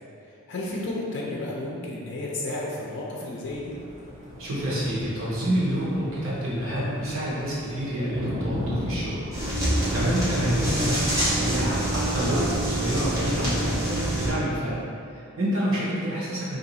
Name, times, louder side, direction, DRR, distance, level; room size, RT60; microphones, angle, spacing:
voice 1, 0.2-3.7, left 2 dB, 55° left, -4 dB, 0.5 m, -32 dB
Thunder, 3.4-13.1, equal, 35° right, 1.4 m, -36 dB
voice 2, 4.4-14.8 15.1-16.6, equal, 70° right, -8 dB, 1.0 m, -28 dB
sound 1, 9.3-14.3, right 1 dB, 15° right, 0.9 m, -26 dB
2.9 x 2.7 x 4.1 m, 2.6 s
head